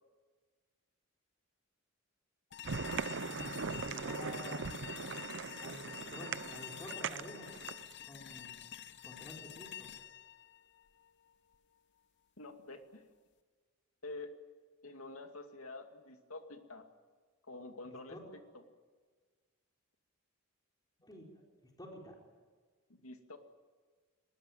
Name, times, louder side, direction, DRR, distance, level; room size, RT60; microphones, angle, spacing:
sound 1, 2.5-11.6, left 10 dB, 60° left, 0.8 m, -48 dB
sound 2, 2.6-7.9, right 5 dB, 65° right, 0.8 m, -40 dB
voice 1, 3.2-4.7 5.6-7.6 8.0-8.7 9.0-9.9 17.8-18.2 21.0-21.3 21.8-22.2, left 1 dB, 20° left, -1 dB, 4.3 m, -50 dB
voice 2, 12.4-13.0 14.0-14.3 14.8-16.9 17.4-18.2 22.9-23.4, left 2 dB, 85° left, 5 dB, 2.4 m, -47 dB
22.5 x 20.0 x 9.1 m, 1.5 s
head